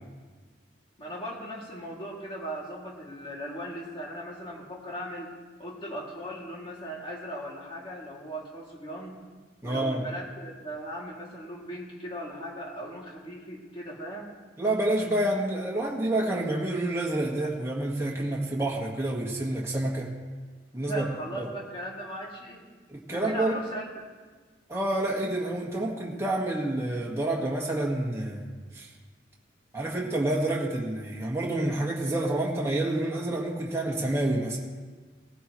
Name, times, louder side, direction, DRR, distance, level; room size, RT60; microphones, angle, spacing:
voice 1, 1.0-5.3 5.6-9.2 9.6-14.3 20.8-22.7 23.1-24.0, equal, 25° left, -3 dB, 2.4 m, -38 dB
voice 2, 9.6-10.0 14.6-20.1 20.7-21.0 21.4-21.5 22.9-23.5 24.7-28.5 28.7-28.9 29.7-34.6, right 1 dB, 15° right, -3 dB, 1.6 m, -28 dB
18.5 x 15.0 x 3.1 m, 1.4 s
head